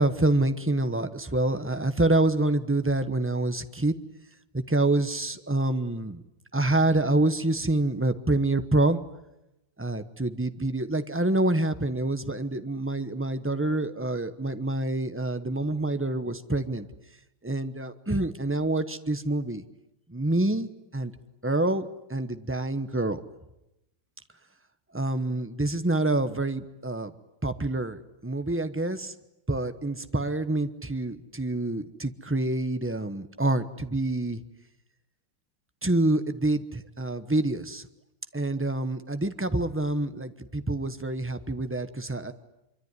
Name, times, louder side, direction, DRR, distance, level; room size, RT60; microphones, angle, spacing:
voice 1, 0.0-3.9 4.5-6.2 6.5-9.0 9.8-16.9 17.4-19.6 20.1-21.1 21.4-23.2 24.9-27.1 27.4-29.1 29.5-34.4 35.8-37.9 38.3-42.3, right 2 dB, 10° right, 10 dB, 0.7 m, -27 dB
25.0 x 24.5 x 9.7 m, 0.91 s
omnidirectional pair, 2.0 m